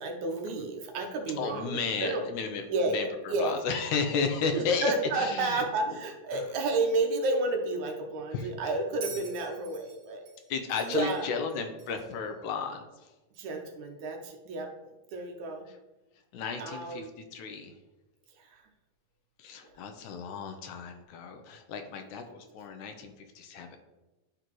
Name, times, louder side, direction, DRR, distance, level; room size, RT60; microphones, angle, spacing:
voice 1, 0.0-2.2 2.7-3.5 4.5-10.2 10.9-11.3 13.4-14.7 15.1-15.7 16.6-17.1 18.4-18.6, right 2 dB, 70° right, 2 dB, 1.8 m, -31 dB
voice 2, 1.4-5.6 6.3-6.4 8.3-8.5 10.5-13.1 16.3-17.7 19.4-23.8, left 5 dB, 80° left, 6 dB, 1.8 m, -33 dB
Bell, 9.0-12.2 13.3-13.5, right 5 dB, 55° right, 2.7 m, -46 dB
11.0 x 3.9 x 3.0 m, 1.1 s
omnidirectional pair, 4.0 m